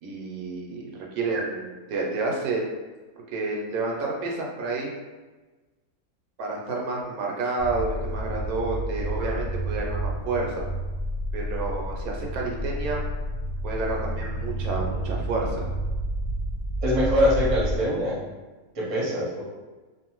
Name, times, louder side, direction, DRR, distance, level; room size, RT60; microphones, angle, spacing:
voice 1, 0.0-2.7 3.3-4.9 6.4-10.5 11.3-13.0 13.6-15.7, right 3 dB, 80° right, -1 dB, 1.1 m, -30 dB
sound 1, 7.6-17.8, right 1 dB, 75° left, 1.0 m, -30 dB
voice 2, 16.8-18.2 18.8-19.4, equal, 30° right, -6 dB, 0.6 m, -23 dB
2.6 x 2.4 x 2.9 m, 1.2 s
omnidirectional pair, 1.5 m